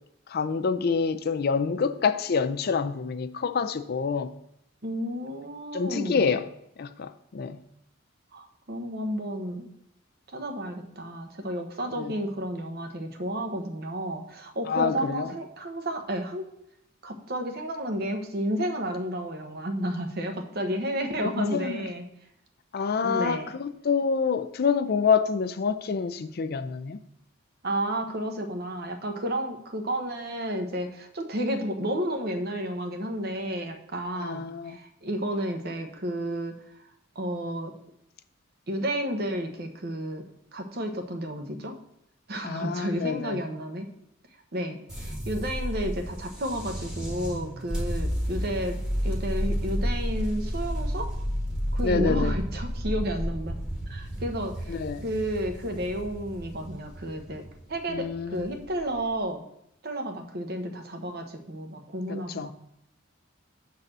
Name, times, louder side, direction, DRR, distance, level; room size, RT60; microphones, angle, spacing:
voice 1, 0.3-4.3 5.7-6.5 6.8-7.6 12.0-12.1 14.7-15.3 21.4-21.9 22.7-27.0 34.2-34.8 42.4-43.4 51.8-52.4 54.7-55.0 57.9-58.4 62.1-62.5, left 5 dB, 50° left, 0.4 m, -27 dB
voice 2, 4.8-6.3 8.3-9.7 10.3-16.4 17.0-22.0 23.0-23.5 27.6-36.5 37.1-37.7 38.7-41.8 42.3-43.9 44.5-48.8 49.0-51.1 51.7-53.6 53.9-59.4 59.8-62.5, equal, 50° right, 1.0 m, -32 dB
sound 1, 44.9-59.1, equal, 5° right, 1.2 m, -31 dB
7.4 x 4.1 x 6.6 m
head